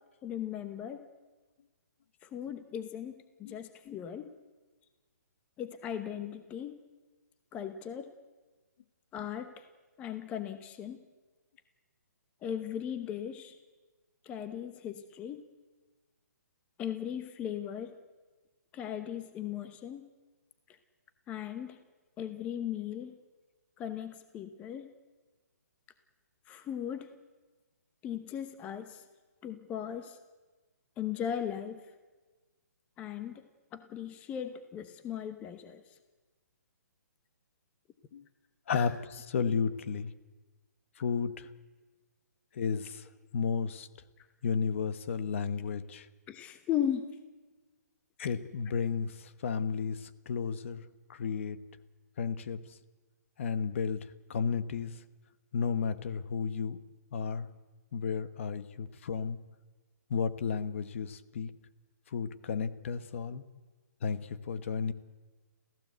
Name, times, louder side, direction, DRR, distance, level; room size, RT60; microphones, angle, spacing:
voice 1, 0.2-1.0 2.2-3.1 3.4-4.3 5.6-6.8 7.5-8.1 9.1-9.6 10.0-11.0 12.4-13.6 14.2-15.4 16.8-17.9 18.7-20.0 21.3-21.8 22.2-23.2 23.8-24.9 26.5-27.1 28.0-29.0 29.4-30.2 31.0-31.9 33.0-33.4 33.7-35.8 38.7-38.9 44.2-44.3 46.3-47.0, left 9 dB, 15° left, 9 dB, 0.9 m, -37 dB
voice 2, 38.7-40.1 41.0-41.5 42.5-43.9 44.4-46.1 48.2-51.6 52.2-52.8 53.4-55.0 55.5-56.8 57.1-57.5 57.9-59.4 60.1-61.5 62.1-63.4 64.0-64.9, left 6 dB, 45° left, 13 dB, 1.2 m, -33 dB
28.0 x 15.5 x 8.1 m, 1.3 s
hypercardioid pair, 160°, 9 cm